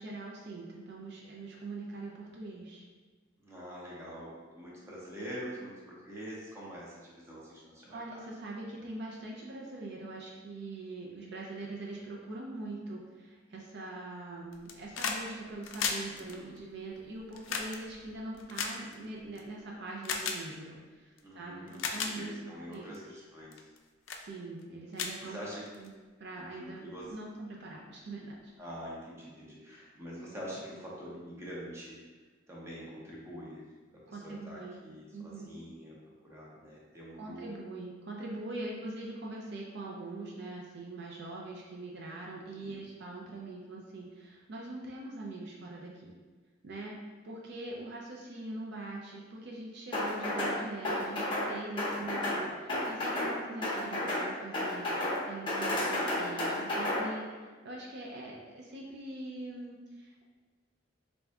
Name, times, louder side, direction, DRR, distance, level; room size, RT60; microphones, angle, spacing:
voice 1, 0.0-2.9 7.9-23.2 24.2-25.4 25.7-25.9 26.2-28.5 34.1-34.8 35.1-35.5 37.2-46.1 46.6-60.3, right 2 dB, 55° right, -2 dB, 0.5 m, -43 dB
voice 2, 3.4-8.2 16.1-16.5 21.2-23.5 25.2-25.6 26.4-27.1 28.6-32.0 32.5-33.6 33.9-36.0 36.2-37.5 42.5-42.8 51.9-52.1 52.4-52.8, equal, 15° right, -6 dB, 0.7 m, -45 dB
sound 1, 14.5-15.2 15.5-19.4 20.0-20.4 21.2-21.3 21.7-22.1 22.7-23.0 23.5-23.8 24.1-24.2 24.6-24.7 24.9-25.9 27.0-27.1, left 5 dB, 75° left, 0.4 m, -35 dB
sound 2, 49.9-50.6 50.8-51.5 51.8-52.4 52.7-53.3 53.6-54.3 54.5-55.2 55.5-57.0, left 1 dB, 25° left, 0.7 m, -31 dB
3.4 x 2.6 x 3.5 m, 1.3 s
head